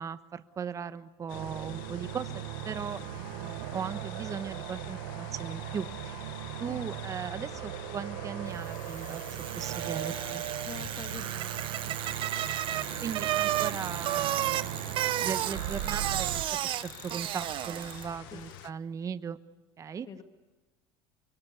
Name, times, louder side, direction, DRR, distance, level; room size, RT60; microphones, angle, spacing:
voice 1, 0.0-6.3 6.6-9.2 9.5-10.5 13.0-16.3 16.6-19.4 19.8-20.1, right 6 dB, 30° right, 12 dB, 1.2 m, -38 dB
sound 1, 1.3-18.7, left 16 dB, 85° left, 0.7 m, -47 dB
sound 2, 1.3-16.5, right 13 dB, 85° right, 1.2 m, -38 dB
Bicycle, 8.7-18.2, right 13 dB, 50° right, 0.9 m, -33 dB
voice 2, 10.6-12.0 18.3-18.5 20.1-20.2, left 7 dB, 35° left, 6 dB, 1.9 m, -46 dB
25.0 x 23.0 x 8.2 m, 1.2 s
supercardioid pair, 115°, 11 cm